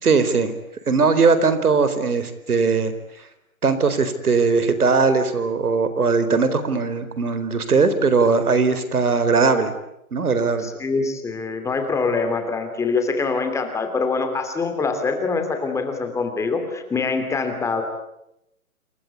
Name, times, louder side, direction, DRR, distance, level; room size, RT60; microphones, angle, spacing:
voice 1, 0.0-0.5 0.9-2.9 3.6-9.7 10.1-10.7, right 4 dB, 80° right, 12 dB, 4.4 m, -19 dB
voice 2, 10.6-17.8, left 4 dB, 5° left, 7 dB, 2.9 m, -24 dB
28.0 x 23.5 x 8.5 m, 0.81 s
hypercardioid pair, 150°, 44 cm